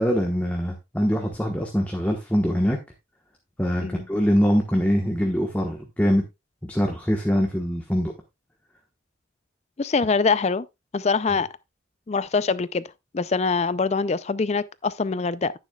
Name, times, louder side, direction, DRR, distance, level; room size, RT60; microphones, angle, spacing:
voice 1, 0.0-2.8 3.6-6.2 6.7-8.1, equal, 10° left, 1.1 m, -23 dB
voice 2, 9.8-10.7 10.9-11.5 12.1-12.8 13.1-15.5, left 4 dB, 35° left, 0.4 m, -24 dB
10.5 x 9.5 x 2.3 m
head